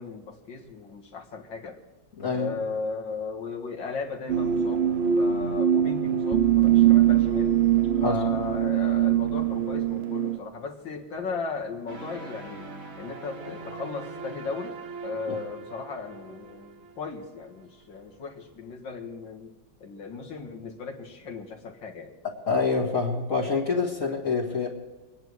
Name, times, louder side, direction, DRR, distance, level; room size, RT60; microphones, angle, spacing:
voice 1, 0.0-1.8 2.3-7.6 8.0-12.7 13.0-14.8 15.0-19.5 19.8-22.2, left 4 dB, 80° left, 1 dB, 2.5 m, -36 dB
voice 2, 2.2-2.5 8.0-8.2 15.3-15.4 22.5-24.7, left 4 dB, 45° left, -4 dB, 2.2 m, -26 dB
sound 1, 4.3-10.4, right 10 dB, 75° right, 0.5 m, -22 dB
sound 2, 11.9-17.8, right 4 dB, 45° right, 1.7 m, -42 dB
24.5 x 10.5 x 4.7 m, 1.2 s
omnidirectional pair, 2.0 m